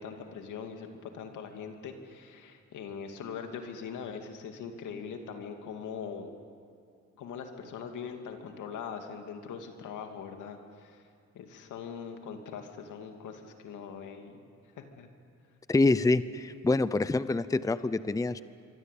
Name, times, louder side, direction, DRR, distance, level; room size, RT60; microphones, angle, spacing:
voice 1, 0.0-6.3 7.2-11.0 11.3-14.4 14.8-15.1, left 6 dB, 85° left, 5 dB, 2.6 m, -41 dB
voice 2, 15.7-18.4, left 2 dB, 10° left, 15 dB, 0.6 m, -26 dB
26.5 x 23.5 x 8.5 m, 2.4 s
cardioid pair, 90°, 30 cm